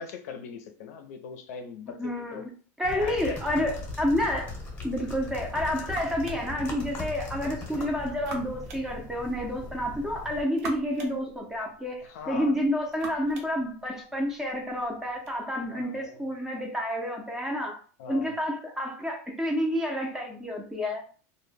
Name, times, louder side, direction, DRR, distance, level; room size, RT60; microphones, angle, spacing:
voice 1, 0.0-2.5 3.0-3.5 12.1-12.7 15.7-16.2 18.0-18.4, left 6 dB, 75° left, 0.5 m, -40 dB
voice 2, 1.9-2.5 2.8-4.5 4.8-17.8 18.1-21.0, equal, 5° right, 0.5 m, -29 dB
sound 1, 2.8-10.4, left 3 dB, 20° left, 0.8 m, -39 dB
sound 2, 5.2-15.4, right 4 dB, 65° right, 0.7 m, -47 dB
2.1 x 2.1 x 3.3 m
supercardioid pair, 150°, 8 cm